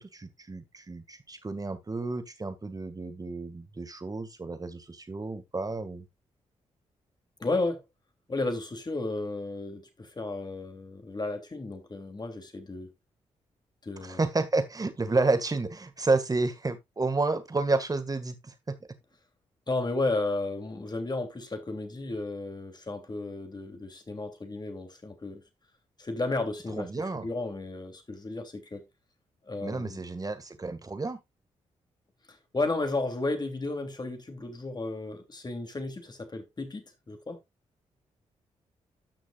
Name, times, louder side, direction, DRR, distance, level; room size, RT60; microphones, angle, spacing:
voice 1, 0.0-6.0 14.0-18.8 26.8-27.3 29.6-31.2, right 3 dB, 30° right, 1.9 m, -30 dB
voice 2, 7.4-7.8 8.3-12.9 13.8-14.3 19.7-25.4 26.0-28.8 29.5-30.0 32.3-37.4, left 2 dB, 35° left, 3.0 m, -33 dB
13.5 x 6.1 x 2.5 m
supercardioid pair, 55°, 13 cm